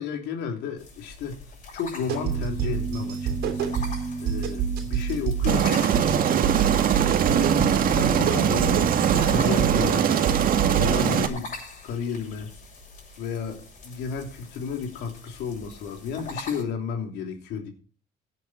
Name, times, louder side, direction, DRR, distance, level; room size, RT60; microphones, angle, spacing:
voice 1, 0.0-1.4 1.7-3.7 4.2-5.9 7.8-8.8 9.1-10.0 10.7-11.5 11.8-12.5 13.2-17.7, left 6 dB, 80° left, 4 dB, 3.2 m, -32 dB
sound 1, 0.8-16.6, left 3 dB, 50° left, 7.3 m, -43 dB
sound 2, 2.1-11.0, right 8 dB, 80° right, 3.1 m, -28 dB
Aircraft, 5.5-11.3, right 8 dB, 55° right, 1.8 m, -22 dB
16.5 x 9.3 x 4.3 m, 0.38 s
cardioid pair, 110°, 17 cm